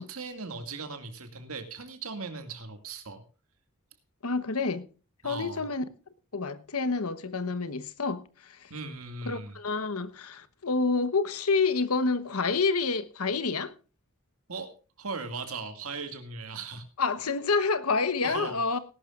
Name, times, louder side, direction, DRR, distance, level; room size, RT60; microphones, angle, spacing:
voice 1, 0.0-3.2 5.2-5.7 8.7-9.6 14.5-16.8 18.2-18.8, right 4 dB, 75° right, 2.1 m, -38 dB
voice 2, 4.2-4.9 5.2-5.8 6.3-8.7 9.2-13.7 17.0-18.8, left 4 dB, 90° left, 1.1 m, -28 dB
19.0 x 11.5 x 2.5 m
head